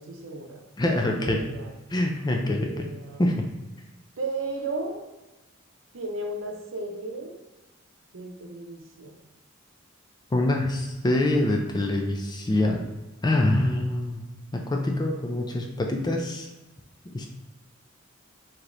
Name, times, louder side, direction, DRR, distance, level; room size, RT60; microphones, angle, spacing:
voice 1, 0.0-0.6 1.1-1.7 2.4-3.2 4.2-5.0 5.9-7.4 8.1-9.1, right 2 dB, 75° right, 2 dB, 0.7 m, -34 dB
voice 2, 0.8-1.4 1.9-2.9 3.2-3.5 10.3-12.8 13.2-14.2 14.5-16.5 17.1-17.3, left 1 dB, 20° left, 2 dB, 0.4 m, -25 dB
4.8 x 2.9 x 2.5 m, 1.1 s
head